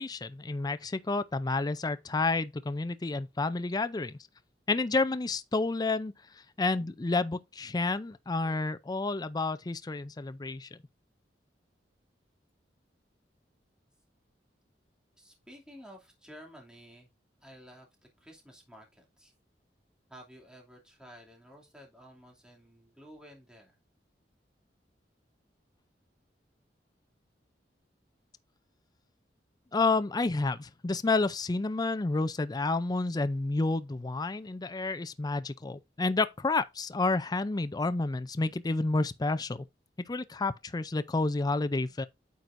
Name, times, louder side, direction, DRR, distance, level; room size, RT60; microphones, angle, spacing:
voice 1, 0.0-4.2 4.7-10.8 29.7-39.6 40.1-42.1, left 3 dB, 25° left, 0.5 m, -30 dB
voice 2, 15.2-17.1 17.4-17.9 18.2-19.3 20.1-23.8, equal, 5° right, 2.6 m, -52 dB
9.3 x 6.1 x 2.6 m
head